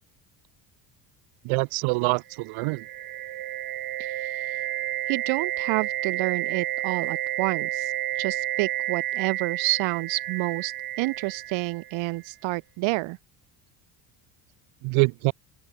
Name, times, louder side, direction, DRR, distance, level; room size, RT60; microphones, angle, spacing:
voice 1, 1.4-2.8 14.8-15.3, right 27 dB, 90° right, 4.8 m, -25 dB
sound 1, 2.3-12.2, right 14 dB, 50° right, 6.8 m, -31 dB
voice 2, 4.0-4.6 5.1-13.2, right 22 dB, 70° right, 6.9 m, -29 dB
open air
cardioid pair, 175°, 47 cm